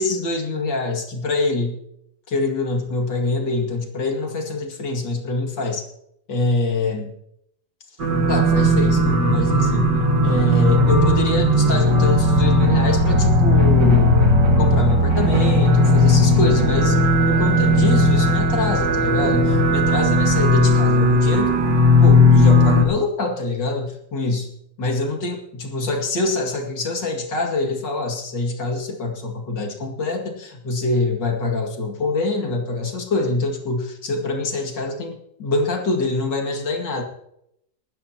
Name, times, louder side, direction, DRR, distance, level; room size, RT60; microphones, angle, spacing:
voice 1, 0.0-1.8 2.3-5.8 6.3-7.1 8.3-9.9 10.2-14.2 14.6-24.5 24.8-37.0, left 2 dB, 85° left, 2 dB, 2.9 m, -24 dB
sound 1, 8.0-22.8, left 1 dB, 75° right, 2.7 m, -16 dB
18.5 x 13.5 x 2.9 m, 0.77 s
omnidirectional pair, 1.9 m